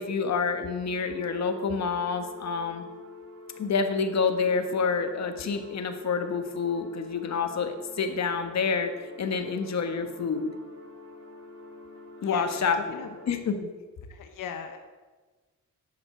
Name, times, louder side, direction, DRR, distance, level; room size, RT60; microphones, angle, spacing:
voice 1, 0.0-2.8 3.6-8.9 9.2-10.5 12.2-12.8 13.3-13.7, left 5 dB, 55° left, 7 dB, 1.4 m, -28 dB
sound 1, 0.8-13.4, left 3 dB, 45° right, 3.2 m, -46 dB
voice 2, 12.2-13.1 14.1-14.8, left 7 dB, 80° left, 6 dB, 1.0 m, -39 dB
11.5 x 8.2 x 7.6 m, 1.3 s
wide cardioid pair, 140°, 31 cm